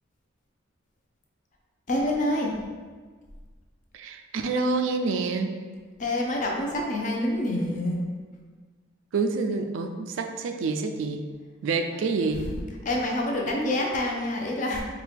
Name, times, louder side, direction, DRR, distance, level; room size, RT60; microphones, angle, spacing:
voice 1, 1.9-2.5 6.0-8.0 11.9-12.0 12.5-12.6 12.9-14.8, left 1 dB, 40° left, 0 dB, 0.6 m, -27 dB
voice 2, 3.9-5.6 9.1-11.2 11.6-12.5, right 4 dB, 75° right, 6 dB, 0.3 m, -27 dB
4.5 x 2.3 x 3.4 m, 1.5 s
head